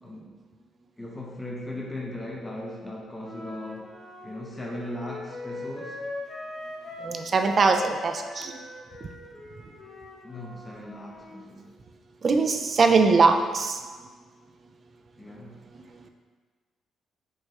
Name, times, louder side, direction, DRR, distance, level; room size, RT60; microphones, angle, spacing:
voice 1, 0.0-0.3 1.0-3.9 4.2-6.0 10.2-11.7 15.2-15.6, left 1 dB, 15° left, -3 dB, 0.5 m, -38 dB
Wind instrument woodwind instrument, 3.2-7.2 7.4-11.4, left 2 dB, 35° left, 0.9 m, -41 dB
voice 2, 7.0-8.5 12.2-13.8, right 4 dB, 45° right, 5 dB, 0.3 m, -21 dB
4.6 x 2.2 x 2.9 m, 1.5 s
cardioid pair, 90°, 0 cm